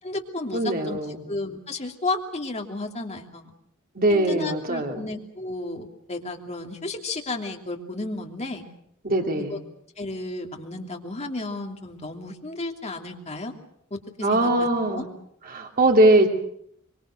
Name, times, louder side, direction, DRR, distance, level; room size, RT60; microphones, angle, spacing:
voice 1, 0.0-1.0 1.3-3.5 4.1-8.6 9.5-9.6 10.0-13.5 13.9-14.5 14.9-15.0, left 2 dB, 30° left, 3 dB, 2.9 m, -33 dB
voice 2, 0.5-1.2 3.9-5.1 9.0-9.6 14.2-15.1 15.5-16.3, right 1 dB, 40° right, 2 dB, 2.9 m, -21 dB
24.5 x 24.5 x 6.5 m, 0.70 s
head